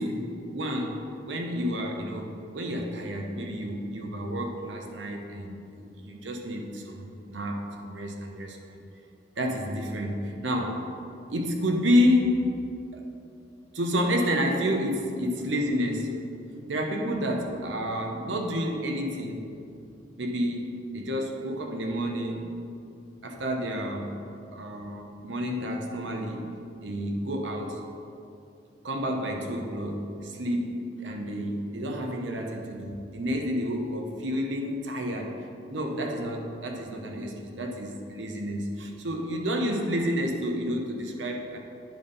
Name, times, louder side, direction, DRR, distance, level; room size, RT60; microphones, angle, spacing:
voice 1, 0.0-8.6 9.4-10.9 11.3-12.6 12.9-13.0 13.7-16.2 16.7-19.5 20.2-20.7 20.9-22.5 23.2-24.2 24.5-26.5 26.8-27.8 28.8-41.6, equal, 85° right, 2 dB, 0.8 m, -30 dB
10.0 x 3.5 x 5.4 m, 2.6 s
head